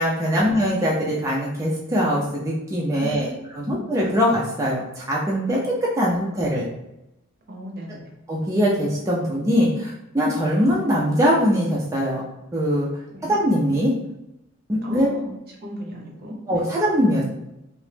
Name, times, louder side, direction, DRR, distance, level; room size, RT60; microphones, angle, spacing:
voice 1, 0.0-4.8 5.1-6.7 8.3-12.2 12.5-12.9 13.3-13.9 14.7-15.1 16.5-17.2, equal, 15° right, -5 dB, 0.4 m, -22 dB
voice 2, 3.0-3.9 7.5-8.2 13.1-13.3 14.8-15.3 15.6-16.7, equal, 50° right, 0 dB, 0.7 m, -36 dB
2.9 x 2.0 x 3.2 m, 0.89 s
head